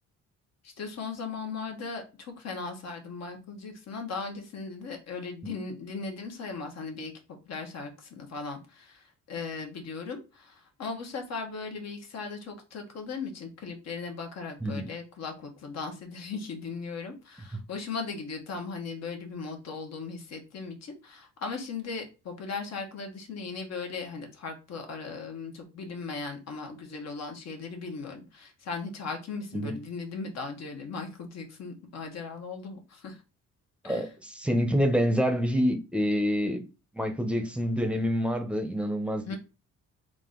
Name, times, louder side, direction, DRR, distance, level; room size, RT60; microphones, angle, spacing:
voice 1, 0.6-9.0 9.3-33.2 33.8-34.1 39.3-39.4, left 4 dB, 60° left, 1.2 m, -38 dB
voice 2, 33.8-36.6 36.9-39.3, equal, 5° right, 0.8 m, -27 dB
3.8 x 2.6 x 3.8 m
cardioid pair, 90°, 30 cm